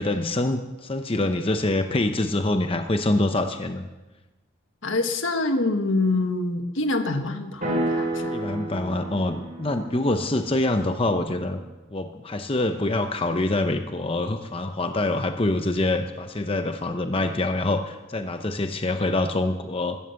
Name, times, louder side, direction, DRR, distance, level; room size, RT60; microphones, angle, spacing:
voice 1, 0.0-3.8 8.3-11.6 11.9-20.0, left 2 dB, 25° left, 6 dB, 0.7 m, -25 dB
voice 2, 4.8-8.3, left 2 dB, 70° left, 7 dB, 1.6 m, -26 dB
sound 1, 7.6-11.7, right 1 dB, 40° right, 5.2 m, -31 dB
15.5 x 13.0 x 7.0 m, 1.1 s
head